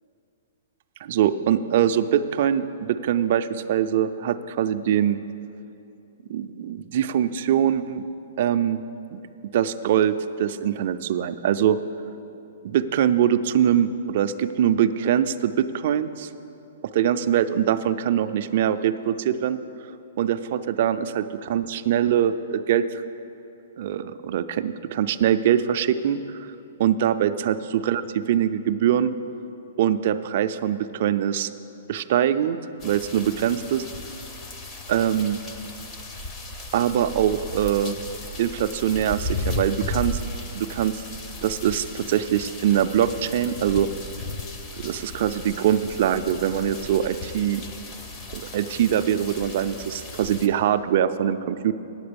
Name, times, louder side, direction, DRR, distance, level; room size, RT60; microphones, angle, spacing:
voice 1, 1.0-5.2 6.3-8.0 8.4-8.8 9.1-9.2 9.5-11.8 12.6-16.3 16.9-19.9 20.2-23.0 23.8-26.5 26.8-29.1 29.8-31.5 31.9-32.6 32.8-33.8 34.9-35.4 36.7-38.0 38.4-40.2 40.5-41.0 41.4-43.9 44.8-47.6 48.3-51.7, right 10 dB, 40° right, 11 dB, 0.3 m, -23 dB
sound 1, 32.8-50.5, left 2 dB, 15° left, 0.5 m, -35 dB
8.6 x 7.9 x 6.8 m, 2.8 s
hypercardioid pair, 175°, 0 cm